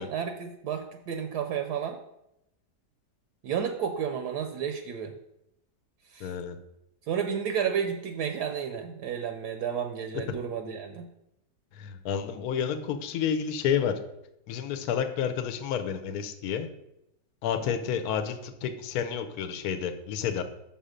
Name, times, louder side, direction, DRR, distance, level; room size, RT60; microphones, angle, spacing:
voice 1, 0.0-2.0 3.4-5.1 6.1-6.3 7.1-11.1, right 7 dB, 75° right, 6 dB, 1.1 m, -31 dB
voice 2, 6.2-6.6 11.8-14.0 14.5-16.7 17.4-20.4, left 8 dB, 65° left, 9 dB, 1.1 m, -30 dB
5.6 x 5.5 x 5.0 m, 0.83 s
omnidirectional pair, 1.8 m